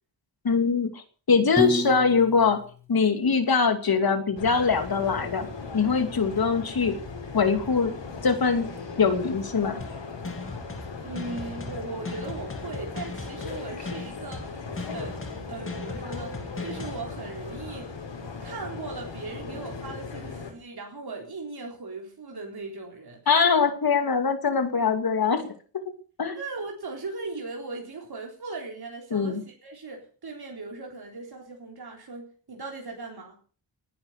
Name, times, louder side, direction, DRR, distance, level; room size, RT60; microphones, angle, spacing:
voice 1, 0.4-2.6 2.9-5.5 5.7-6.9 7.3-7.9 8.2-8.7 9.0-9.8 23.3-25.5 26.2-26.4 29.1-29.4, left 5 dB, 55° left, 7 dB, 2.7 m, -23 dB
Piano, 1.6-3.8, equal, 5° left, 2.8 m, -32 dB
sound 1, 4.4-20.5, left 4 dB, 75° left, 6.1 m, -38 dB
sound 2, 9.8-17.0, left 3 dB, 30° left, 2.5 m, -38 dB
voice 2, 11.0-18.0 18.4-23.4 26.4-33.4, right 3 dB, 60° right, 1 dB, 4.0 m, -38 dB
19.0 x 11.0 x 6.7 m, 0.41 s
wide cardioid pair, 160°, 44 cm